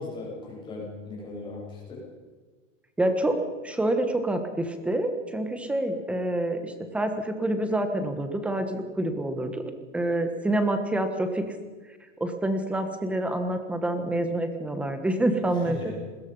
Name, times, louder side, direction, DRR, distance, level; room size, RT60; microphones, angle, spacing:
voice 1, 0.0-2.1 15.5-15.9, left 3 dB, 15° left, -3 dB, 7.6 m, -38 dB
voice 2, 3.0-3.4 3.6-9.6 9.9-11.4 12.2-15.9, right 1 dB, 5° right, 7 dB, 1.3 m, -27 dB
27.5 x 21.5 x 5.5 m, 1.4 s
supercardioid pair, 175°, 38 cm